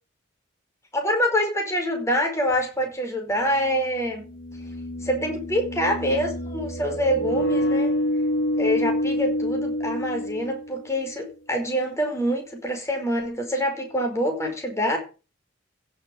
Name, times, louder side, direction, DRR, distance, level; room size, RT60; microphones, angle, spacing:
voice 1, 0.9-4.3 5.0-7.9 8.6-15.0, equal, 15° left, 2 dB, 5.0 m, -25 dB
sound 1, 2.5-2.6 4.1-11.0, equal, 75° left, 2.9 m, -27 dB
16.0 x 7.0 x 7.5 m, 0.34 s
head